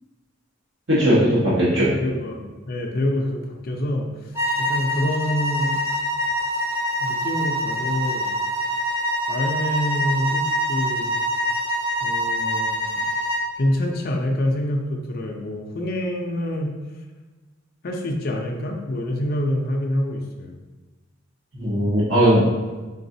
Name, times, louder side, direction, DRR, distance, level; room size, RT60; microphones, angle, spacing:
voice 1, 0.9-1.9 21.5-22.7, equal, 70° right, -10 dB, 1.1 m, -18 dB
voice 2, 2.0-4.3 4.6-5.7 7.0-8.3 9.3-11.1 12.0-12.8 13.6-16.7 17.8-20.6, left 1 dB, 50° left, 1 dB, 0.5 m, -26 dB
sound 1, 4.3-13.5, equal, 10° right, 0.6 m, -25 dB
3.9 x 3.7 x 2.7 m, 1.3 s
head